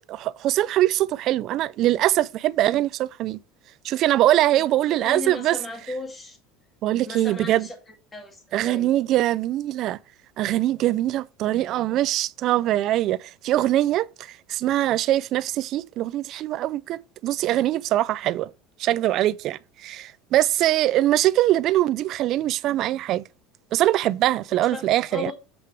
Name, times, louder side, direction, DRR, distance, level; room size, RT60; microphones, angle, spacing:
voice 1, 0.1-3.4 3.8-5.6 6.8-7.7 8.5-10.0 10.4-18.5 18.8-23.2 23.7-25.3, right 14 dB, 40° right, 0.3 m, -22 dB
voice 2, 5.0-6.4 7.0-7.7 8.1-8.9 24.7-25.3, left 3 dB, 15° left, 1.8 m, -36 dB
7.9 x 4.8 x 4.4 m
cardioid pair, 170°, 0 cm